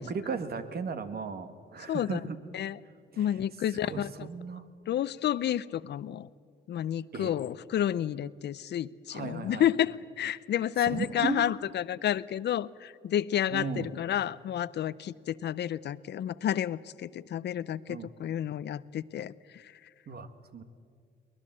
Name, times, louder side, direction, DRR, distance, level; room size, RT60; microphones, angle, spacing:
voice 1, 0.0-2.7 3.1-3.3 3.8-4.6 7.1-7.4 9.1-9.7 10.8-11.5 13.5-13.9 17.9-18.1 20.1-20.6, right 5 dB, 50° right, 9 dB, 1.7 m, -36 dB
voice 2, 1.9-2.2 2.5-2.8 3.2-4.3 4.9-6.3 6.7-19.6, left 11 dB, 60° left, 18 dB, 0.6 m, -30 dB
23.0 x 20.0 x 7.5 m, 2.2 s
cardioid pair, 90°, 20 cm